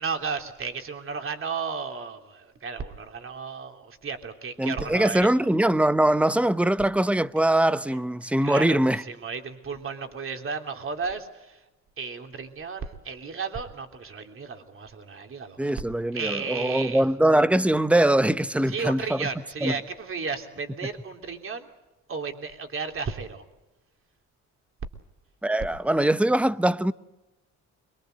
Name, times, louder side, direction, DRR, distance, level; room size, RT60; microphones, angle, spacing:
voice 1, 0.0-5.3 8.4-11.6 12.0-15.7 16.1-17.0 18.7-21.7 22.1-23.4, right 5 dB, 45° right, 3.3 m, -34 dB
voice 2, 4.6-9.0 15.6-19.3 19.6-19.7 25.4-26.9, right 1 dB, 5° right, 0.8 m, -22 dB
24.5 x 22.5 x 8.1 m
cardioid pair, 90°, 30 cm